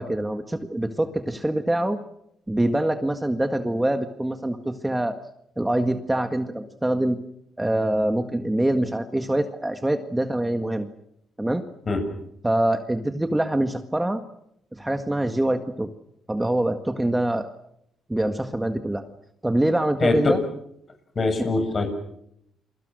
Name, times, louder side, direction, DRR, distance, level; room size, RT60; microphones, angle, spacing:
voice 1, 0.0-2.0 2.5-5.2 5.6-7.2 7.6-10.9 11.4-11.6 12.4-14.2 14.8-15.9 16.3-17.5 18.1-19.0 19.4-20.4, right 1 dB, 10° right, 8 dB, 1.7 m, -24 dB
voice 2, 20.0-20.4 21.2-21.9, left 3 dB, 40° left, 7 dB, 7.2 m, -22 dB
29.5 x 23.5 x 6.4 m, 0.76 s
cardioid pair, 90°, 0 cm